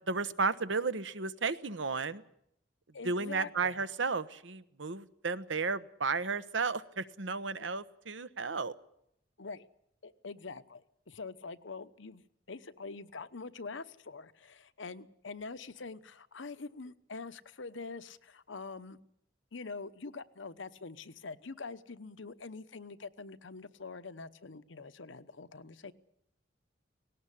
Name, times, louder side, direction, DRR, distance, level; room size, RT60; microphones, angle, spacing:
voice 1, 0.1-2.2 3.0-8.7, right 4 dB, 85° right, 13 dB, 1.0 m, -33 dB
voice 2, 2.9-3.8 7.6-7.7 9.4-9.7 10.0-19.0 19.5-25.9, left 4 dB, 85° left, 12 dB, 1.0 m, -45 dB
18.5 x 18.0 x 10.0 m, 0.76 s
head